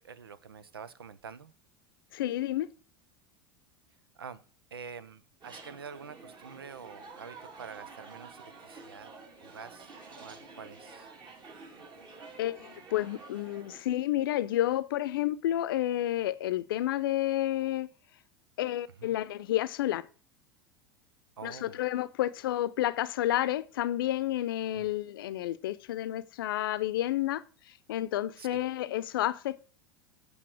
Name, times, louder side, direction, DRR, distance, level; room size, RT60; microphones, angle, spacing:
voice 1, 0.0-1.5 4.2-4.4 4.7-9.1 9.4-9.9 10.2-11.1 19.0-19.1 21.4-21.8 24.7-24.9 28.4-28.6, right 6 dB, 85° right, 0.7 m, -46 dB
voice 2, 2.1-2.7 12.4-17.9 18.6-20.1 21.4-27.4 27.9-29.6, left 13 dB, 70° left, 0.7 m, -30 dB
sound 1, 5.4-13.8, right 4 dB, 40° right, 3.5 m, -50 dB
8.6 x 6.6 x 6.3 m
hypercardioid pair, 85°, 12 cm